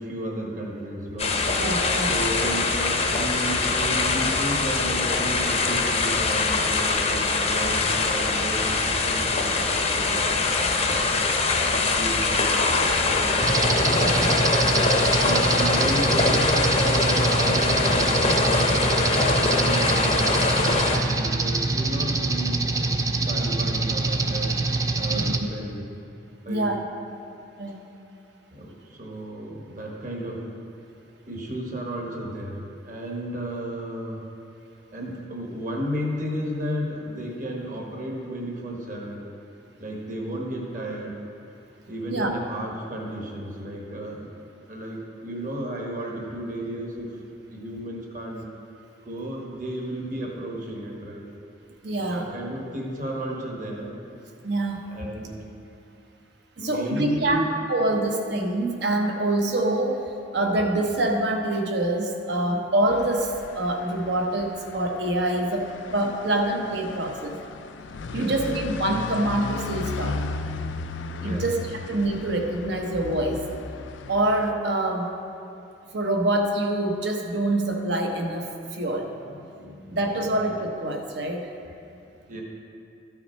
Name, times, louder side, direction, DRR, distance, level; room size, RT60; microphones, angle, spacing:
voice 1, 0.0-1.5 2.1-11.3 11.6-13.4 15.1-22.9 23.2-24.6 25.0-25.8 26.4-26.7 28.5-30.5 31.3-34.3 34.9-39.2 39.8-41.1 41.9-44.4 44.7-47.2 47.5-48.5 49.0-51.2 52.0-54.0 54.9-55.5 56.6-57.5 68.1-68.5 71.2-71.5 79.3-80.0 80.3-80.4 82.3-82.4, right 1 dB, 45° right, -1 dB, 1.3 m, -33 dB
sound 1, 1.2-21.0, left 3 dB, 35° left, 0.7 m, -23 dB
voice 2, 1.6-2.1 14.0-14.4 25.1-25.3 26.5-26.8 27.6-27.9 42.1-42.3 51.8-52.3 54.4-54.9 56.6-57.4 57.7-67.4 68.1-70.2 71.2-71.6 71.9-73.4 74.1-75.1 75.9-79.1 79.9-81.5, right 1 dB, 65° right, 2 dB, 0.9 m, -25 dB
sound 2, 13.4-25.4, right 3 dB, 15° right, 0.3 m, -25 dB
sound 3, 62.9-74.5, left 4 dB, 80° left, 0.4 m, -36 dB
13.0 x 5.8 x 4.4 m, 2.7 s
head